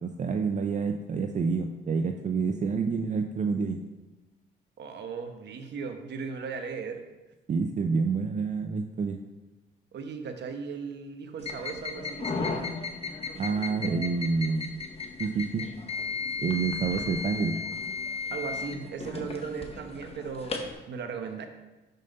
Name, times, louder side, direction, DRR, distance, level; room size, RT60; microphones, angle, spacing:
voice 1, 0.0-3.8 7.5-9.2 13.3-14.8 15.2-15.7 16.4-17.6, right 5 dB, 40° right, 6 dB, 0.5 m, -28 dB
voice 2, 4.8-7.0 9.9-12.7 16.9-17.1 18.3-21.5, right 5 dB, 60° right, 6 dB, 0.9 m, -37 dB
sound 1, 11.4-20.7, left 4 dB, 30° left, 0.9 m, -35 dB
5.4 x 5.4 x 5.2 m, 1.1 s
cardioid pair, 90°, 20 cm